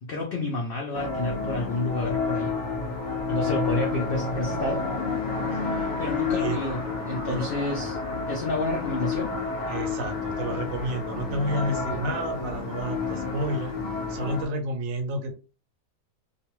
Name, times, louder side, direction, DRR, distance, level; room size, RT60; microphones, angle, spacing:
voice 1, 0.0-2.6 3.3-4.9 5.7-8.0 8.3-9.3, left 2 dB, 70° left, 0.5 m, -30 dB
sound 1, 0.9-14.5, left 4 dB, 40° left, 0.7 m, -30 dB
voice 2, 7.3-7.9 9.7-13.8 14.1-15.3, right 1 dB, 70° right, 0.9 m, -30 dB
2.5 x 2.2 x 3.0 m
omnidirectional pair, 1.6 m